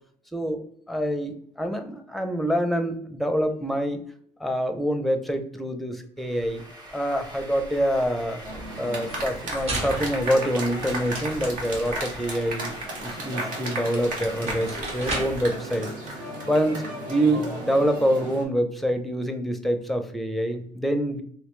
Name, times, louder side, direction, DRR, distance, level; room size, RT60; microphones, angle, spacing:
voice 1, 0.3-4.0 4.4-6.6 6.9-8.4 8.8-12.7 13.0-15.9 16.5-16.8 17.1-21.2, equal, ahead, 7 dB, 0.6 m, -26 dB
sound 1, 6.2-15.4, equal, 30° right, 1.3 m, -43 dB
sound 2, 8.4-18.4, right 1 dB, 70° right, 1.2 m, -34 dB
sound 3, 9.0-11.3 13.8-13.9 14.3-15.5, right 2 dB, 45° right, 1.3 m, -35 dB
3.1 x 3.0 x 3.1 m, 0.63 s
supercardioid pair, 80°, 14 cm